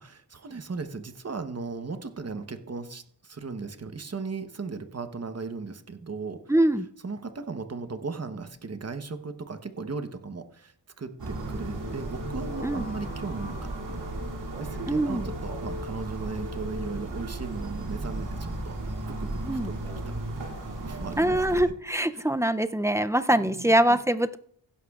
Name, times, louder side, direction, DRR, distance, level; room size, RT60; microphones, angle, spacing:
voice 1, 0.0-6.4 7.0-14.0 14.6-18.8 19.2-19.8 20.1-20.2 20.8-21.7 22.1-22.2 23.3-24.0, right 4 dB, 35° right, 9 dB, 0.9 m, -37 dB
voice 2, 6.5-6.9 12.6-12.9 14.9-15.3 19.4-19.7 21.2-24.4, right 1 dB, 5° right, 11 dB, 0.3 m, -23 dB
sound 1, 11.2-21.6, right 1 dB, 65° right, 2.7 m, -35 dB
16.0 x 11.5 x 2.4 m, 0.64 s
wide cardioid pair, 100°, 45 cm